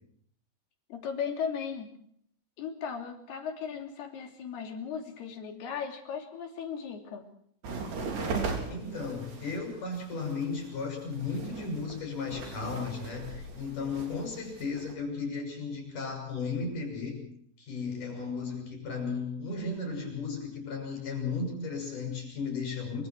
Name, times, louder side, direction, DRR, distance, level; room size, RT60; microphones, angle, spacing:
voice 1, 0.9-1.9 2.6-7.3, left 7 dB, 75° left, 3 dB, 5.0 m, -36 dB
sound 1, 7.6-14.9, right 4 dB, 75° right, 5.7 m, -38 dB
voice 2, 8.7-17.2 17.6-23.1, left 4 dB, 50° left, 3 dB, 8.1 m, -35 dB
27.0 x 25.0 x 4.7 m, 0.64 s
omnidirectional pair, 4.6 m